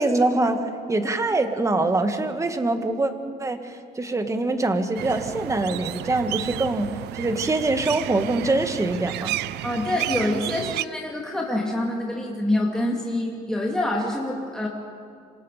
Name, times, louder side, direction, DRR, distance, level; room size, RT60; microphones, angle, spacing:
voice 1, 0.0-3.1 3.4-9.4, right 2 dB, 20° right, 7 dB, 1.7 m, -24 dB
sound 1, 4.9-10.8, right 16 dB, 80° right, 0.5 m, -32 dB
voice 2, 9.6-14.7, left 1 dB, 5° left, -3 dB, 2.7 m, -26 dB
27.0 x 25.0 x 5.1 m, 2.2 s
cardioid pair, 110°, 17 cm